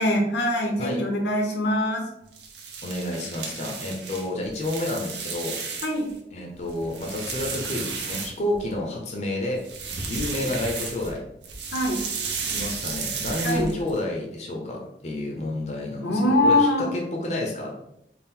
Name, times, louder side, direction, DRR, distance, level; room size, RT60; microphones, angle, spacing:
voice 1, 0.0-2.0 5.8-6.1 10.4-10.5 11.7-12.0 13.4-13.7 16.0-16.8, left 1 dB, 85° left, 2 dB, 0.8 m, -23 dB
sound 1, 2.3-6.1 6.5-8.8 9.5-11.2 11.4-14.0, right 5 dB, 75° right, 0.7 m, -33 dB
voice 2, 2.8-5.6 6.3-9.6 10.1-11.2 12.5-17.7, left 1 dB, 40° left, -1 dB, 0.6 m, -30 dB
4.3 x 2.0 x 3.6 m, 0.80 s
head